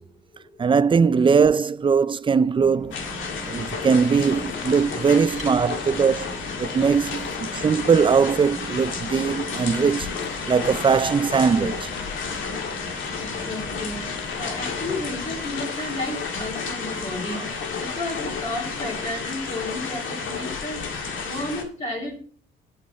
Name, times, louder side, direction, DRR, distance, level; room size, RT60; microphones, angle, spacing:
voice 1, 0.6-3.0 3.5-6.3 6.6-10.2 10.5-11.9 17.3-17.4, right 6 dB, 25° right, 0.4 m, -20 dB
sound 1, 2.6-15.4, right 1 dB, 5° right, 2.3 m, -41 dB
sound 2, 2.9-21.6, left 5 dB, 75° left, 2.0 m, -32 dB
sound 3, 3.5-16.5, left 10 dB, 60° left, 0.6 m, -42 dB
voice 2, 5.1-5.4 6.7-6.9 13.1-22.2, left 1 dB, 35° left, 3.0 m, -33 dB
8.3 x 7.4 x 4.2 m
cardioid pair, 90°, 20 cm